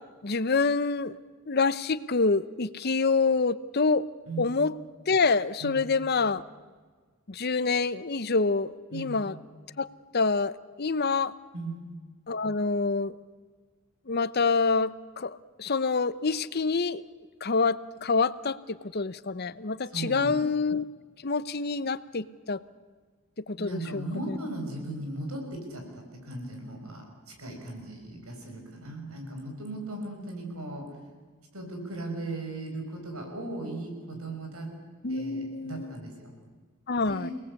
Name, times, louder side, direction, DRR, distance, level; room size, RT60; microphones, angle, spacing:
voice 1, 0.2-1.2 1.5-4.1 4.4-4.7 5.1-6.4 7.3-9.4 9.8-9.9 10.1-11.3 12.3-13.1 14.1-17.0 17.4-20.8 21.2-22.6 23.5-24.4 35.0-35.9 36.9-37.3, left 4 dB, 45° left, 16 dB, 0.8 m, -27 dB
voice 2, 19.9-20.4 23.6-30.8 31.5-34.7 35.1-36.3 37.0-37.3, right 2 dB, 85° right, 2 dB, 6.5 m, -37 dB
29.5 x 19.0 x 8.4 m, 1.5 s
head